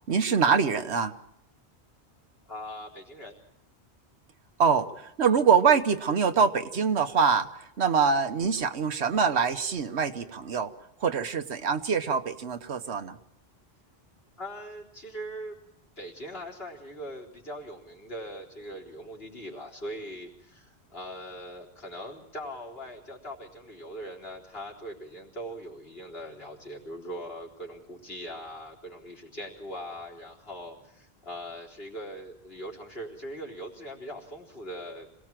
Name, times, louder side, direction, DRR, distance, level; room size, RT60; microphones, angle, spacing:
voice 1, 0.1-1.1 4.6-10.7 11.0-13.2, right 6 dB, 85° right, 9 dB, 1.4 m, -24 dB
voice 2, 2.5-3.4 14.4-35.1, equal, 65° left, -2 dB, 4.2 m, -41 dB
26.5 x 18.0 x 7.5 m, 0.78 s
omnidirectional pair, 1.1 m